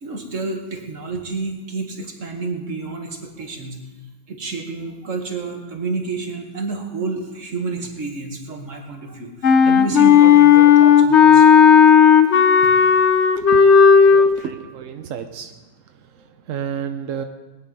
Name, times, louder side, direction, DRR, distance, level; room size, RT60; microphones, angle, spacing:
voice 1, 0.0-3.8 4.3-11.5 12.8-12.9, right 3 dB, 40° right, 3 dB, 2.1 m, -30 dB
Wind instrument woodwind instrument, 9.4-14.3, left 7 dB, 50° left, 0.9 m, -11 dB
voice 2, 14.1-15.5 16.2-17.2, right 8 dB, 60° right, 6 dB, 0.8 m, -31 dB
20.0 x 10.5 x 5.5 m, 1.2 s
omnidirectional pair, 2.1 m